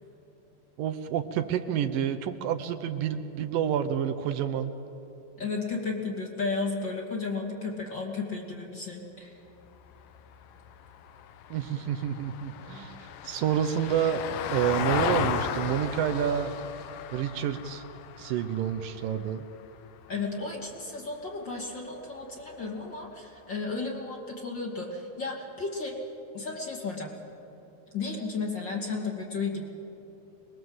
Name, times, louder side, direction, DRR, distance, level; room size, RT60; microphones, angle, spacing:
voice 1, 0.8-4.7 11.5-14.2 14.5-16.6 17.1-17.8 18.2-19.4, right 9 dB, 75° right, 9 dB, 2.5 m, -29 dB
voice 2, 5.4-9.4 20.1-26.0 26.3-27.1 27.9-29.7, left 4 dB, 35° left, 0 dB, 2.7 m, -33 dB
Vehicle, 9.6-20.1 22.4-22.5, left 9 dB, 75° left, 2.5 m, -35 dB
25.5 x 21.0 x 7.9 m, 2.9 s
omnidirectional pair, 4.1 m